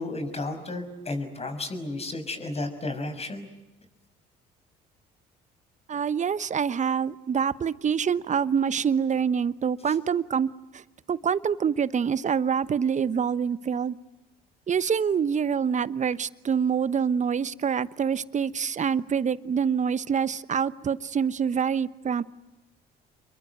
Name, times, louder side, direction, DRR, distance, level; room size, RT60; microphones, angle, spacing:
voice 1, 0.0-3.5, left 2 dB, 30° left, 7 dB, 6.2 m, -33 dB
voice 2, 5.9-10.8 11.1-14.0 14.7-22.2, right 7 dB, 35° right, 17 dB, 1.1 m, -26 dB
28.5 x 22.5 x 9.2 m, 1.0 s
hypercardioid pair, 65°, 20 cm